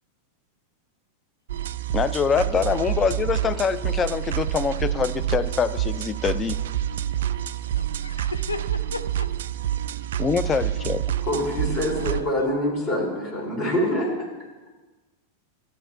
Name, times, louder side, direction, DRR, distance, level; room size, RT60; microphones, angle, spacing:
sound 1, 1.5-12.2, right 11 dB, 60° right, 0.3 m, -28 dB
voice 1, 1.9-6.6 10.2-11.0, left 6 dB, 20° left, 13 dB, 0.4 m, -24 dB
voice 2, 7.8-9.3 11.9-12.5 13.4-13.6, left 3 dB, 80° left, 10 dB, 0.5 m, -36 dB
voice 3, 11.3-14.2, equal, 35° left, -1 dB, 3.8 m, -25 dB
13.0 x 9.1 x 3.4 m, 1.2 s
figure-of-eight pair, 90°, 0 cm